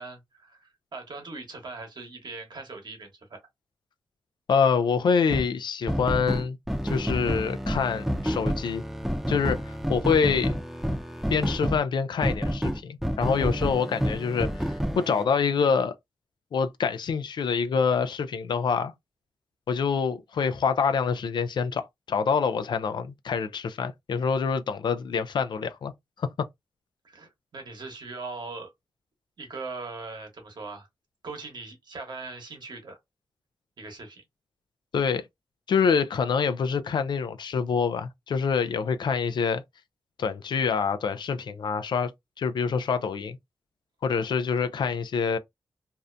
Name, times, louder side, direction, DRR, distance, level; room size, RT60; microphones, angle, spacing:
voice 1, 0.0-3.4 27.0-28.7 29.4-30.9 31.2-33.0 33.8-34.2, right 3 dB, 65° right, 1.1 m, -40 dB
voice 2, 4.5-6.6 6.8-8.8 9.3-10.5 11.3-15.9 16.5-18.9 19.7-25.9 26.2-26.3 34.9-35.3 35.7-39.6 40.2-42.1 42.4-43.4 44.0-45.4, left 6 dB, 65° left, 0.4 m, -26 dB
sound 1, 5.3-5.5 5.9-11.8 12.2-15.2, equal, ahead, 0.6 m, -29 dB
2.6 x 2.1 x 2.4 m
supercardioid pair, 40°, 8 cm